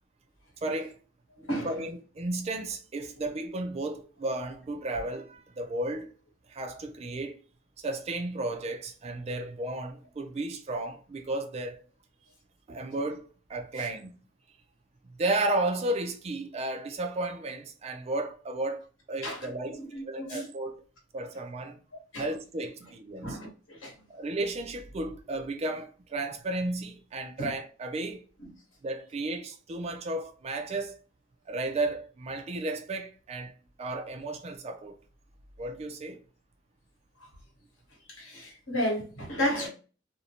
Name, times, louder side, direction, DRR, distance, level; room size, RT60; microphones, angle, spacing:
voice 1, 0.6-0.9 1.6-6.1 6.5-7.4 7.8-11.8 12.7-14.2 15.0-20.8 21.1-21.8 22.2-23.4 24.1-28.3 28.8-31.0 31.5-33.5 33.8-34.9 35.6-36.2, right 2 dB, 35° right, 0.3 m, -33 dB
voice 2, 19.2-20.5 22.1-22.3 23.2-23.9 27.4-27.5 28.4-28.5 38.1-39.7, equal, 90° left, 1.1 m, -33 dB
2.5 x 2.0 x 2.8 m
head